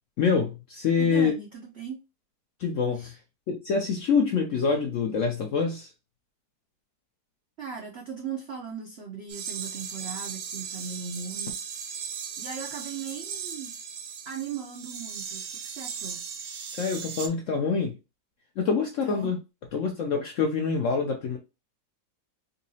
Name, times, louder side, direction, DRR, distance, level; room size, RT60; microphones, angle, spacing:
voice 1, 0.2-1.3 2.6-3.2 3.5-5.9 16.8-18.0 18.6-19.4 19.7-21.4, left 5 dB, 70° left, 0.7 m, -26 dB
voice 2, 1.0-2.0 2.9-3.2 7.6-11.5 12.4-13.7 14.3-16.3 19.0-19.3, right 7 dB, 70° right, 0.6 m, -38 dB
sound 1, 9.3-17.3, right 7 dB, 90° right, 1.4 m, -37 dB
4.0 x 2.7 x 2.7 m
omnidirectional pair, 1.9 m